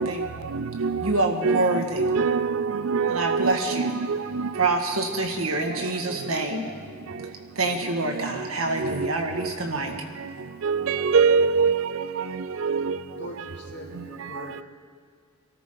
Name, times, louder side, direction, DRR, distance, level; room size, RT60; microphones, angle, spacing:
voice 1, 0.0-1.1 1.4-4.7 8.8-9.5 10.6-13.0, right 5 dB, 70° right, 0.5 m, -24 dB
voice 2, 1.0-2.0 3.1-3.9 4.6-6.7 7.6-10.0, right 2 dB, 85° right, 1.9 m, -26 dB
voice 3, 13.1-14.6, left 1 dB, 55° left, 2.5 m, -41 dB
23.5 x 13.5 x 3.9 m
head